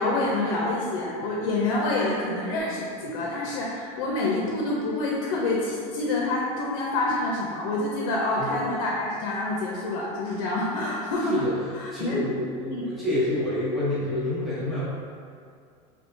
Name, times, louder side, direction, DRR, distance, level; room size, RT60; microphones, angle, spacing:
voice 1, 0.0-11.4 11.8-12.2 12.7-12.9, left 2 dB, 85° left, -3 dB, 0.5 m, -27 dB
voice 2, 11.2-14.8, left 1 dB, ahead, -11 dB, 0.7 m, -28 dB
3.6 x 2.7 x 2.6 m, 2.2 s
cardioid pair, 175°, 18 cm